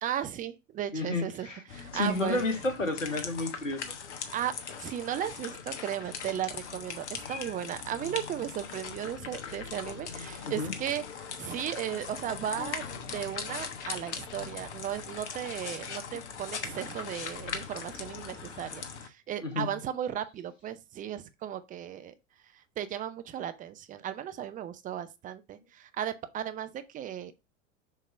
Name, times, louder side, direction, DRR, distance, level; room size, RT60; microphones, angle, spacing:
voice 1, 0.0-2.6 4.3-4.5 4.8-22.1 22.8-27.3, right 10 dB, 20° right, 0.6 m, -36 dB
voice 2, 0.9-1.6 1.9-3.9 7.2-7.5 10.4-10.7 19.4-19.8, left 2 dB, 85° left, 1.6 m, -31 dB
sound 1, 1.7-19.1, left 6 dB, 65° left, 1.2 m, -40 dB
6.8 x 3.0 x 5.6 m
figure-of-eight pair, 85°, 38 cm